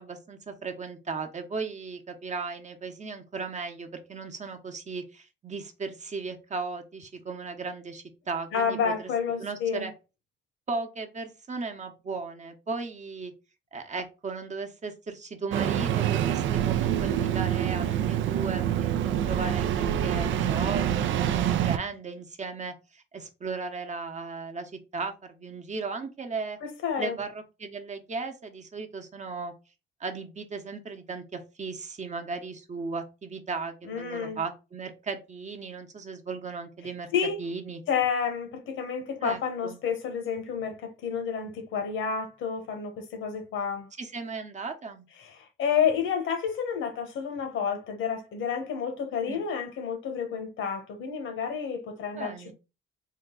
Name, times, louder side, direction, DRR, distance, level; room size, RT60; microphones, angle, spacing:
voice 1, 0.0-9.1 9.4-9.9 10.7-13.3 13.7-26.6 27.0-29.5 30.0-37.1 37.4-37.8 39.2-39.8 44.0-45.1 49.3-49.4 52.2-52.5, right 4 dB, 35° right, 0.9 m, -36 dB
voice 2, 8.5-9.9 26.6-27.2 33.9-34.4 37.1-37.4 37.9-43.9 45.2-52.3, left 7 dB, 80° left, 1.1 m, -30 dB
Engine starting, 15.5-21.8, right 10 dB, 75° right, 0.5 m, -26 dB
3.7 x 2.3 x 3.8 m
cardioid pair, 90°, 20 cm